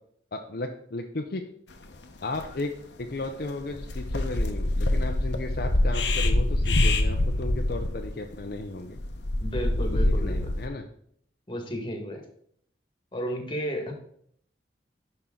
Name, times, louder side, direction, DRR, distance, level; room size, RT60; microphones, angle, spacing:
voice 1, 0.3-1.5 2.2-9.0 9.7-10.9, left 2 dB, 55° left, 3 dB, 0.6 m, -35 dB
sound 1, 1.9-2.0 2.3-2.5 3.0-3.3 3.6-10.7, left 1 dB, 85° left, 0.9 m, -25 dB
voice 2, 9.4-10.5 11.5-12.2 13.1-13.9, equal, 25° left, 3 dB, 1.6 m, -33 dB
10.5 x 5.5 x 3.8 m, 0.66 s
head